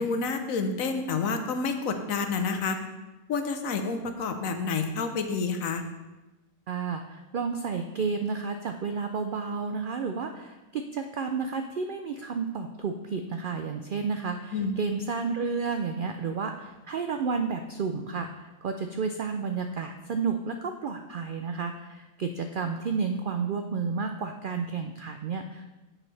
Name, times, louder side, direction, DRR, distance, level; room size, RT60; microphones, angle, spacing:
voice 1, 0.0-2.8 3.3-5.8 14.5-14.7, left 4 dB, 75° left, 7 dB, 1.2 m, -29 dB
voice 2, 6.7-25.7, right 5 dB, 85° right, 6 dB, 0.4 m, -31 dB
9.4 x 7.4 x 3.3 m, 1.1 s
omnidirectional pair, 1.5 m